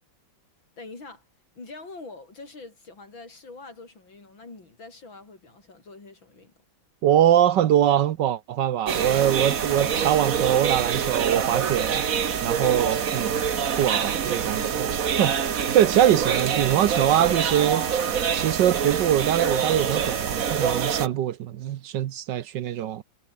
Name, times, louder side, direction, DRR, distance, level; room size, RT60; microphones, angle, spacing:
voice 1, 0.8-1.2 1.6-6.5, left 3 dB, 75° left, 6.1 m, -44 dB
voice 2, 7.0-12.0 12.4-13.4 13.8-15.3 15.7-17.9 18.3-23.0, right 11 dB, 65° right, 1.4 m, -23 dB
sound 1, 8.9-21.1, right 7 dB, 50° right, 1.6 m, -26 dB
omnidirectional pair, 2.2 m